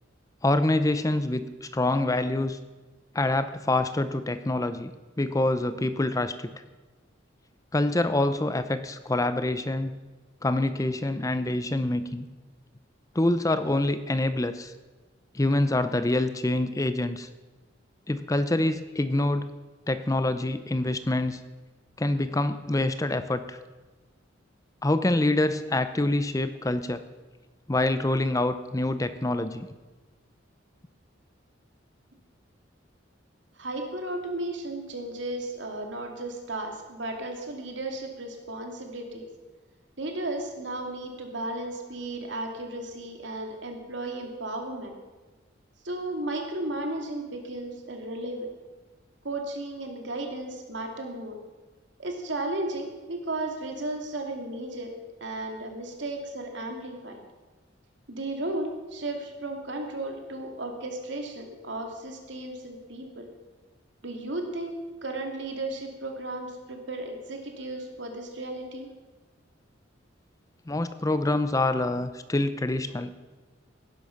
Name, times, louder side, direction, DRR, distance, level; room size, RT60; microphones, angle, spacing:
voice 1, 0.4-2.6 3.1-4.9 5.2-6.5 7.7-9.9 10.4-12.3 13.1-14.7 15.3-17.3 18.1-19.5 19.9-21.4 22.0-23.6 24.8-27.0 27.7-29.7 70.7-73.1, left 2 dB, 15° left, 11 dB, 0.6 m, -26 dB
voice 2, 33.6-39.2 40.0-44.9 45.8-48.5 49.2-51.3 52.0-54.9 55.2-57.2 58.1-63.3 64.0-64.8 65.0-68.9, right 2 dB, 70° right, 3 dB, 2.6 m, -34 dB
17.5 x 10.5 x 5.9 m, 1.2 s
head